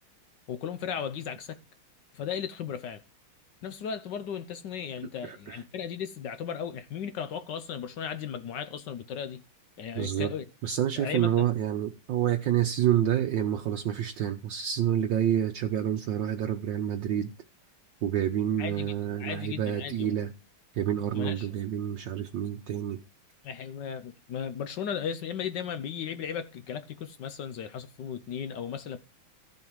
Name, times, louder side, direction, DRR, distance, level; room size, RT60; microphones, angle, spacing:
voice 1, 0.5-1.6 2.1-3.0 3.6-9.4 9.8-10.4 11.0-11.5 18.6-18.9 19.2-20.1 21.1-21.5 23.4-29.0, left 8 dB, 65° left, 1.2 m, -36 dB
voice 2, 5.2-5.6 9.9-10.3 10.6-17.3 18.0-20.3 20.7-23.0, right 10 dB, 70° right, 1.3 m, -28 dB
13.5 x 7.2 x 4.6 m
omnidirectional pair, 2.3 m